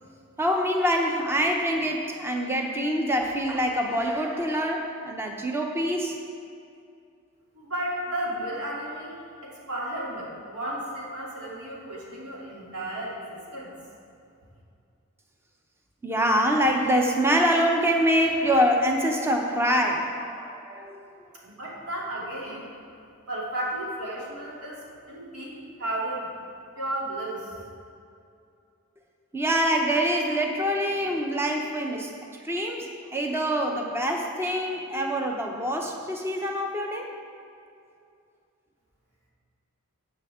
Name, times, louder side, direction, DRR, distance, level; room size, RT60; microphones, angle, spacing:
voice 1, 0.4-6.2 16.0-21.0 29.3-32.1 32.4-37.1, equal, 10° right, 1 dB, 0.7 m, -25 dB
voice 2, 7.5-13.7 21.4-22.7 23.3-26.3 26.7-27.6, right 1 dB, 90° right, -6 dB, 3.0 m, -33 dB
14.5 x 8.4 x 3.6 m, 2.5 s
head